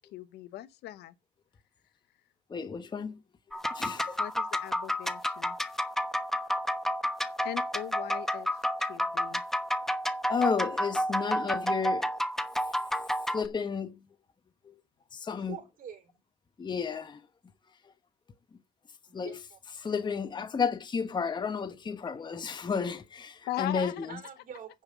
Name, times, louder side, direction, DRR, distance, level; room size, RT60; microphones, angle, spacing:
voice 1, 0.1-1.1 4.2-5.6 7.4-8.5 8.8-9.4 23.5-24.1, left 14 dB, 75° left, 0.8 m, -39 dB
voice 2, 2.5-3.2 3.7-4.2 10.3-12.1 13.3-14.0 14.7-14.8 15.1-15.6 16.6-17.2 19.1-19.4 19.8-24.1, left 6 dB, 25° left, 1.0 m, -32 dB
sound 1, 3.5-13.5, equal, ahead, 1.0 m, -30 dB
voice 3, 15.3-16.1 19.1-19.6 24.0-24.8, right 8 dB, 55° right, 3.6 m, -45 dB
9.5 x 5.3 x 7.3 m
cardioid pair, 110°, 17 cm